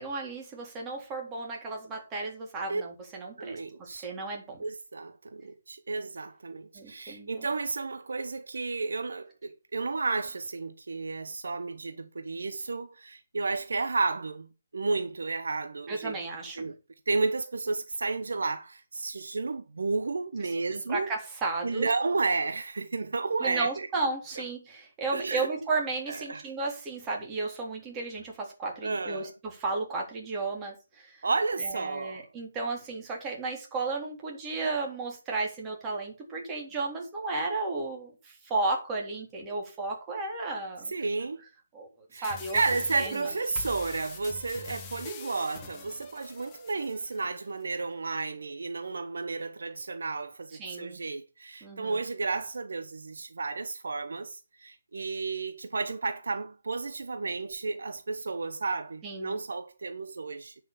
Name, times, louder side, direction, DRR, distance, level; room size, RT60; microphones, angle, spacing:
voice 1, 0.0-4.6 6.7-7.5 15.9-16.7 20.4-20.5 20.9-21.9 23.4-31.3 31.6-40.9 41.7-42.6 43.0-43.2 50.6-51.0 51.6-52.0 59.0-59.4, right 3 dB, 15° right, 3.7 m, -34 dB
voice 2, 3.4-4.1 4.6-14.5 14.7-16.1 16.6-16.7 17.1-21.1 21.6-23.9 24.4-24.5 25.1-25.5 26.1-26.4 28.8-29.3 31.2-32.2 40.9-41.4 42.1-60.5, right 3 dB, 65° right, 1.0 m, -32 dB
sound 1, 42.2-47.2, left 4 dB, 20° left, 1.8 m, -44 dB
9.8 x 6.2 x 7.1 m
figure-of-eight pair, 145°, 0 cm